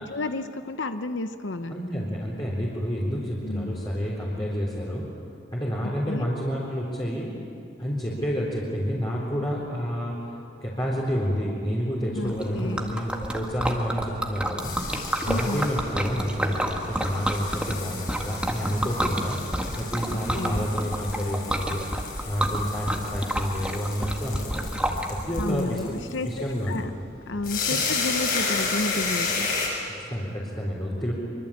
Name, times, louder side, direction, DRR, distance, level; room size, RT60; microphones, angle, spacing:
voice 1, 0.0-1.8 3.4-3.8 5.8-6.3 12.1-13.0 15.3-15.7 20.0-20.7 25.3-26.9 27.3-29.5, left 2 dB, 85° left, 9 dB, 0.8 m, -32 dB
voice 2, 1.7-5.1 5.5-7.4 7.8-10.3 10.6-14.8 15.2-19.4 19.7-21.8 22.2-25.9 26.2-26.8 29.9-31.1, equal, 25° left, -6 dB, 4.0 m, -29 dB
Liquid, 12.3-25.4, right 1 dB, 5° right, 1.8 m, -30 dB
sound 1, 13.9-29.7, left 4 dB, 50° left, 7.2 m, -33 dB
24.5 x 24.5 x 8.7 m, 2.7 s
head